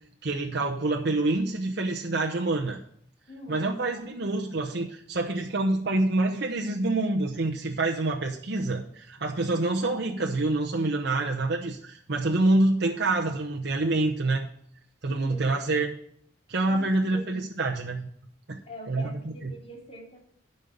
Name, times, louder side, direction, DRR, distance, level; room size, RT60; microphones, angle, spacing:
voice 1, 0.2-2.8 3.5-14.5 15.0-15.9 16.5-18.0 18.5-18.6 18.9-19.5, right 2 dB, 65° right, 0 dB, 0.9 m, -26 dB
voice 2, 3.3-3.7 15.0-15.5 16.7-17.8 18.7-20.2, equal, 35° left, -1 dB, 2.9 m, -44 dB
12.0 x 5.5 x 6.7 m, 0.63 s
head